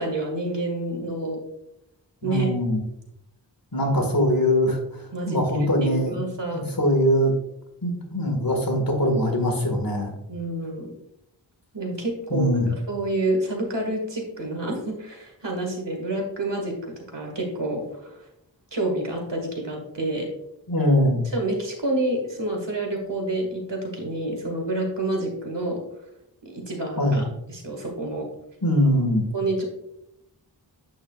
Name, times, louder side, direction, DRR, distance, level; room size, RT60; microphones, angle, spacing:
voice 1, 0.0-1.4 2.2-2.5 5.1-6.6 10.3-10.9 11.7-18.3 18.7-20.3 21.3-25.8 26.5-28.3 29.3-29.6, right 1 dB, 80° right, 1 dB, 1.9 m, -28 dB
voice 2, 2.2-2.8 3.7-4.8 5.3-6.2 6.5-7.3 7.8-10.1 12.3-12.7 20.7-21.2 27.0-27.2 28.6-29.3, equal, 55° left, 2 dB, 1.8 m, -22 dB
8.5 x 6.3 x 2.4 m, 0.80 s
wide cardioid pair, 45°, 42 cm